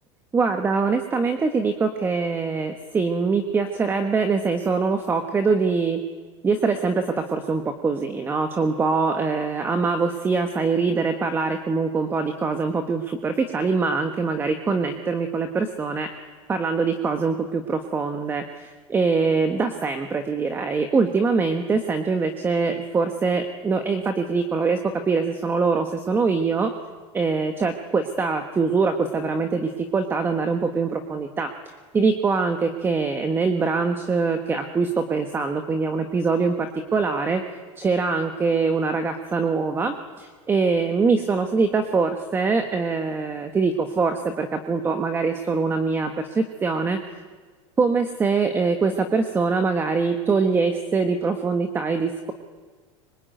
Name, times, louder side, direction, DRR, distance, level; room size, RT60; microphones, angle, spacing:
voice 1, 0.3-6.0 6.4-16.1 16.5-24.8 25.0-26.7 27.1-36.7 36.9-37.4 37.8-47.2 47.8-52.3, right 4 dB, 15° right, 7 dB, 1.4 m, -23 dB
25.5 x 24.5 x 9.2 m, 1.4 s
supercardioid pair, 160°, 15 cm